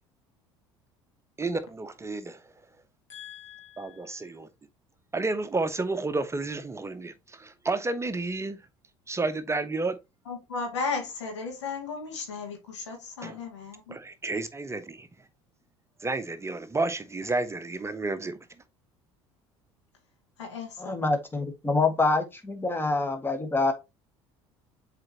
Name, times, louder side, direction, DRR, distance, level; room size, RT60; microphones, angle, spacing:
voice 1, 1.4-2.4 3.8-4.5 5.1-8.6 9.1-10.0 13.2-13.4 13.9-15.1 16.0-18.3, right 3 dB, 20° right, 0.8 m, -31 dB
voice 2, 3.1-4.3 10.3-14.0 20.4-21.0, left 4 dB, 85° left, 2.4 m, -36 dB
voice 3, 20.8-23.7, left 3 dB, 15° left, 1.6 m, -26 dB
7.7 x 4.2 x 2.9 m
hypercardioid pair, 65°, 15 cm